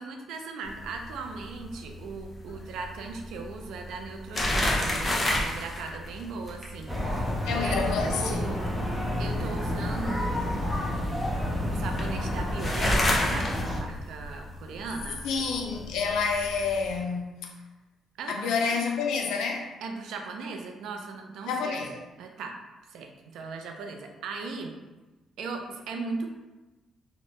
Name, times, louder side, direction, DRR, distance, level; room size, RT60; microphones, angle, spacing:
voice 1, 0.0-8.7 9.2-11.0 11.6-15.2 18.2-18.9 19.8-21.8 22.2-22.6 22.9-24.7 25.4-26.3, right 4 dB, 80° right, 4 dB, 0.4 m, -38 dB
sound 1, 0.6-17.0, left 1 dB, 25° left, 0.6 m, -33 dB
sound 2, 6.9-13.8, left 1 dB, 10° right, 0.7 m, -30 dB
voice 2, 7.4-8.6 15.2-17.5 18.3-19.7 21.5-22.0, left 5 dB, 90° left, 2 dB, 0.4 m, -29 dB
2.8 x 2.1 x 3.0 m, 1.1 s
cardioid pair, 90°, 0 cm